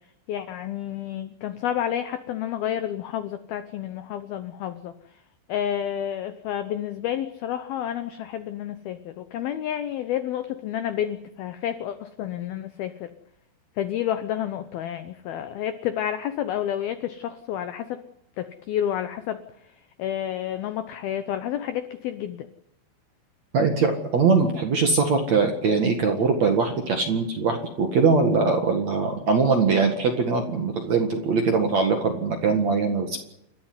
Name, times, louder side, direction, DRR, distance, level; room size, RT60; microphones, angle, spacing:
voice 1, 0.3-4.9 5.5-13.1 13.8-18.0 18.4-19.4 20.0-22.5, left 10 dB, 80° left, 10 dB, 2.1 m, -30 dB
voice 2, 23.5-33.2, right 4 dB, 55° right, 4 dB, 2.1 m, -22 dB
29.0 x 13.0 x 9.7 m, 0.82 s
omnidirectional pair, 5.7 m